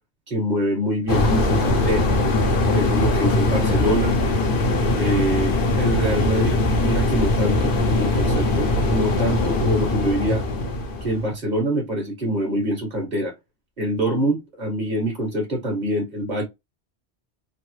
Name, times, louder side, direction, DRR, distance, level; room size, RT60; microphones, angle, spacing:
voice 1, 0.3-2.1 2.7-4.2 4.9-10.4 11.0-13.3 13.8-16.4, right 1 dB, 40° right, 1.5 m, -25 dB
sound 1, 1.1-11.3, left 2 dB, 55° left, 0.8 m, -21 dB
3.3 x 2.0 x 3.0 m
omnidirectional pair, 1.2 m